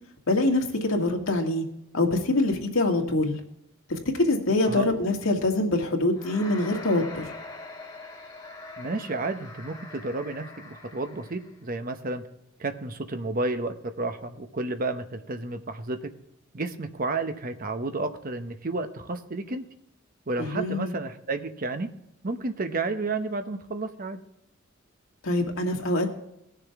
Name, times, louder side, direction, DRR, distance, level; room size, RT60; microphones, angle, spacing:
voice 1, 0.3-1.6 1.9-3.4 3.9-7.2 20.4-20.9 25.2-26.1, left 2 dB, 80° left, 1 dB, 2.0 m, -24 dB
sound 1, 6.2-11.5, left 2 dB, 20° left, 1.6 m, -43 dB
voice 2, 8.8-12.2 12.6-16.1 16.5-19.6 20.3-21.9 22.2-24.2, right 3 dB, 45° right, 8 dB, 0.9 m, -31 dB
18.0 x 6.8 x 3.5 m, 0.83 s
head